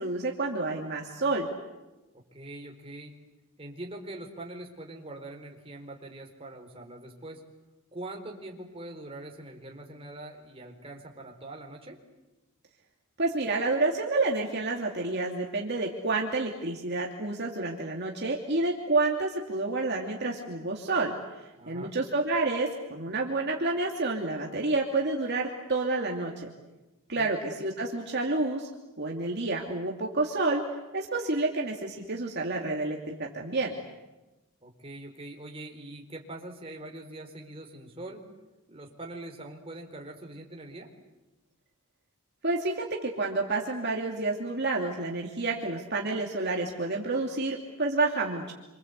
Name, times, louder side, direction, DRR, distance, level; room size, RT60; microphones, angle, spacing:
voice 1, 0.0-1.5 13.2-21.1 21.7-26.5 27.1-28.7 29.0-30.6 30.9-33.7 42.4-48.5, right 3 dB, 50° right, -1 dB, 2.8 m, -29 dB
voice 2, 2.3-3.1 3.6-7.4 7.9-12.0 21.6-21.9 27.1-27.3 34.6-38.2 38.7-40.9, right 1 dB, 25° right, 2 dB, 4.3 m, -43 dB
28.0 x 26.0 x 8.3 m, 1.1 s
head